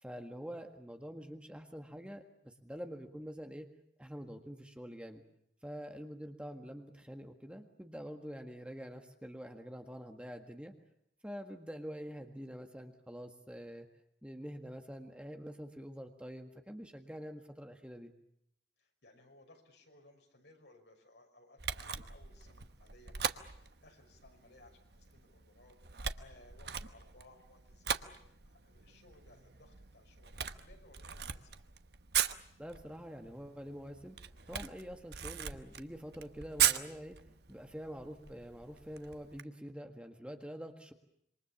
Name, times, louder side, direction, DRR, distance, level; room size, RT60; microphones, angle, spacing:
voice 1, 0.0-3.7 4.0-5.2 5.6-10.7 11.2-13.9 14.2-18.1 32.6-34.2 34.5-37.2 37.5-40.9, equal, 5° right, 4 dB, 1.7 m, -46 dB
voice 2, 18.8-25.8 26.1-31.6, left 2 dB, 70° left, 3 dB, 5.9 m, -62 dB
Camera, 21.6-39.4, right 9 dB, 65° right, 1.1 m, -39 dB
27.0 x 24.0 x 7.2 m, 0.72 s
head